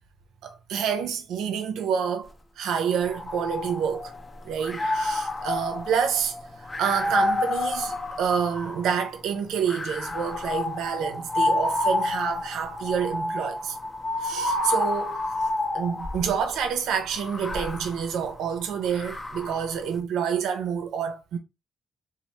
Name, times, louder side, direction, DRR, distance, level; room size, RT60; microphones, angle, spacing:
voice 1, 0.4-2.3 2.6-4.1 4.4-13.8 14.2-15.2 15.7-21.4, right 7 dB, 90° right, 0.5 m, -28 dB
sound 1, 3.0-4.2 4.6-9.0 9.7-16.4 17.1-19.7, left 2 dB, 30° left, 0.5 m, -29 dB
2.9 x 2.0 x 3.1 m
cardioid pair, 90°, 0 cm